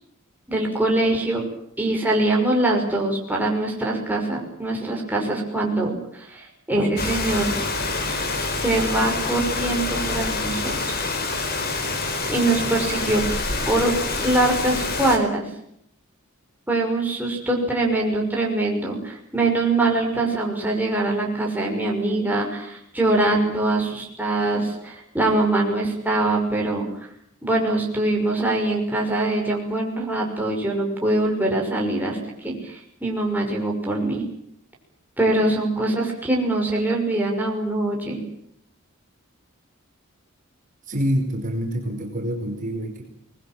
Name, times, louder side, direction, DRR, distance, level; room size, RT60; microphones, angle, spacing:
voice 1, 0.5-1.4 1.8-7.5 8.6-10.7 12.3-13.2 13.7-13.9 14.2-15.5 16.7-26.9 27.4-34.2 35.2-38.2, right 2 dB, 10° right, -1 dB, 5.9 m, -23 dB
Rain, 7.0-15.2, left 3 dB, 45° left, 4.3 m, -26 dB
voice 2, 40.9-43.0, equal, 40° right, 2 dB, 5.0 m, -26 dB
25.0 x 21.0 x 9.0 m, 0.70 s
head